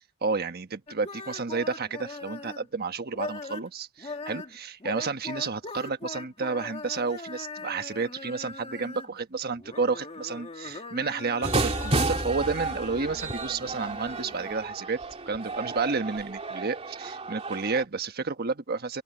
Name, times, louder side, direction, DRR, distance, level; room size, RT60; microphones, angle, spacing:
voice 1, 0.2-15.0 15.3-19.0, right 4 dB, 45° right, 1.2 m, -31 dB
sound 1, 0.9-2.7 3.1-3.7 4.0-9.2 9.5-14.6, left 3 dB, 30° left, 2.4 m, -40 dB
sound 2, 11.4-17.8, right 2 dB, 30° right, 2.6 m, -32 dB
open air
head